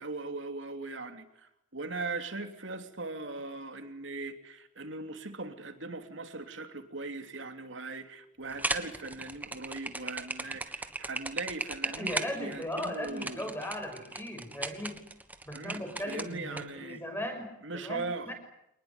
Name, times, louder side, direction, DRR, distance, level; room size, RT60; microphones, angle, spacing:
voice 1, 0.0-13.4 15.5-17.0 17.6-18.3, right 3 dB, 70° right, 7 dB, 3.0 m, -39 dB
sound 1, 8.5-16.6, right 2 dB, 10° right, 1.5 m, -36 dB
voice 2, 11.8-15.0 15.4-18.3, left 1 dB, 10° left, 6 dB, 6.0 m, -38 dB
26.5 x 20.0 x 9.8 m, 0.83 s
head